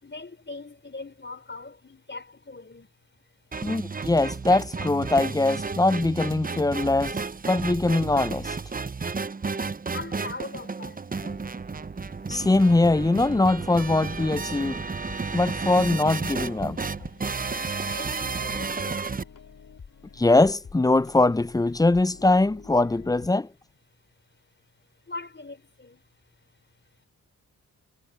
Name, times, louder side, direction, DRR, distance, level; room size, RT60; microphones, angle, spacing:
voice 1, 0.0-2.9 9.9-11.4 17.4-19.0 25.1-26.0, left 3 dB, 30° left, 4.2 m, -40 dB
sound 1, 3.5-19.2, right 4 dB, 25° right, 0.7 m, -32 dB
voice 2, 3.6-7.2 7.5-8.6 12.3-14.8 15.3-16.8 20.2-23.5, left 2 dB, 10° left, 0.5 m, -22 dB
sound 2, 13.9-23.3, left 6 dB, 60° left, 3.5 m, -48 dB
cardioid pair, 55°, 36 cm